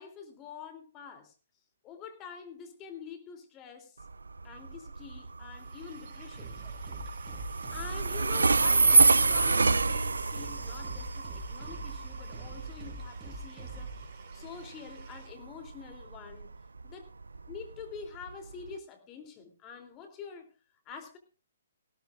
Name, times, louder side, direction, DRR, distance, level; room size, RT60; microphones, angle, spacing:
voice 1, 0.0-1.3 1.8-4.0 4.4-6.6 7.7-13.9 14.3-16.5 16.8-17.1 17.5-20.5 20.8-21.2, left 6 dB, 25° left, 5 dB, 3.0 m, -46 dB
Train, 4.0-18.7, right 4 dB, 85° right, 0.6 m, -28 dB
sound 1, 5.4-15.3, right 6 dB, 45° right, 4.5 m, -57 dB
sound 2, 6.3-14.0, right 2 dB, 20° right, 4.7 m, -44 dB
19.0 x 16.5 x 2.5 m, 0.33 s
figure-of-eight pair, 135°, 0 cm